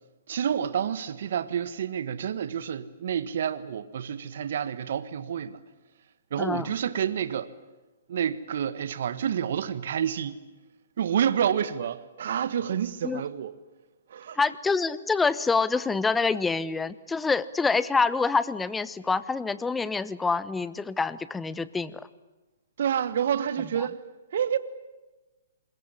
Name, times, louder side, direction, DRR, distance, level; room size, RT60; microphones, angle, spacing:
voice 1, 0.3-5.6 6.3-7.5 8.1-10.4 11.0-13.6 14.1-14.4 22.8-24.0 24.3-24.6, right 8 dB, 60° right, 1.4 m, -28 dB
voice 2, 6.4-6.7 13.0-13.2 14.4-22.1, left 4 dB, 10° left, 1.1 m, -26 dB
26.0 x 21.5 x 9.9 m
hypercardioid pair, 130°, 0 cm